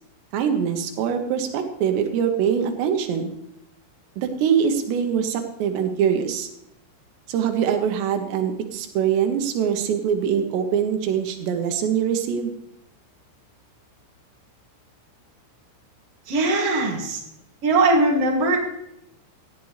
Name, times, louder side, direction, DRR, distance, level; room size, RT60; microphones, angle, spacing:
voice 1, 0.3-3.3 4.2-6.5 7.3-12.5, right 8 dB, 90° right, 5 dB, 3.4 m, -23 dB
voice 2, 16.3-17.2 17.6-18.6, right 2 dB, 40° right, -1 dB, 3.0 m, -20 dB
17.5 x 12.5 x 3.3 m, 0.79 s
omnidirectional pair, 4.8 m